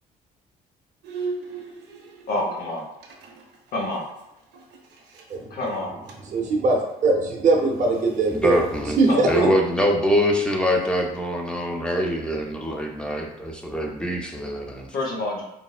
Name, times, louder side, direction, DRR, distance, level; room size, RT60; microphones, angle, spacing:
Bowed string instrument, 1.0-5.4 5.7-5.8 6.1-6.4 6.6-9.5, right 4 dB, 85° right, 0.6 m, -37 dB
voice 1, 2.3-2.8 3.7-4.1 5.5-5.9 9.1-9.5 14.9-15.5, left 2 dB, 65° left, -1 dB, 0.8 m, -27 dB
voice 2, 6.3-8.6 9.0-9.5, right 3 dB, 45° right, 0 dB, 0.7 m, -20 dB
voice 3, 8.3-9.0 9.3-14.9, equal, 5° left, 1 dB, 0.5 m, -24 dB
4.1 x 2.0 x 2.3 m, 0.90 s
cardioid pair, 110°, 17 cm